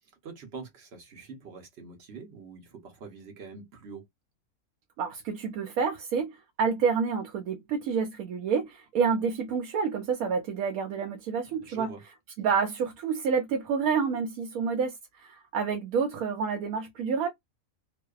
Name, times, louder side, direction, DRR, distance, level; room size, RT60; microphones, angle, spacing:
voice 1, 0.2-4.0 11.6-12.0, right 5 dB, 55° right, 0.9 m, -44 dB
voice 2, 5.0-11.9 12.4-17.3, right 6 dB, 80° right, 1.0 m, -28 dB
2.6 x 2.2 x 2.3 m
omnidirectional pair, 1.5 m